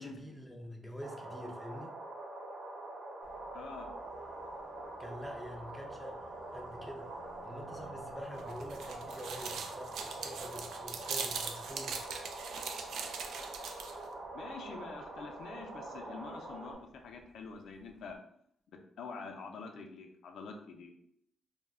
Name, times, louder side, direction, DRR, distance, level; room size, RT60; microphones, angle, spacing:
voice 1, 0.0-2.0 5.0-7.1 7.4-12.0, equal, 5° left, 1 dB, 0.4 m, -46 dB
sound 1, 1.0-16.7, right 2 dB, 65° right, 0.8 m, -45 dB
Car passing by, 3.2-18.2, right 2 dB, 15° right, 0.7 m, -60 dB
voice 2, 3.5-3.9 14.3-18.2 19.0-20.9, left 4 dB, 75° left, 4 dB, 0.4 m, -46 dB
sound 2, 8.4-14.1, right 5 dB, 80° right, 0.3 m, -41 dB
2.2 x 2.1 x 3.5 m, 0.69 s
cardioid pair, 125°, 0 cm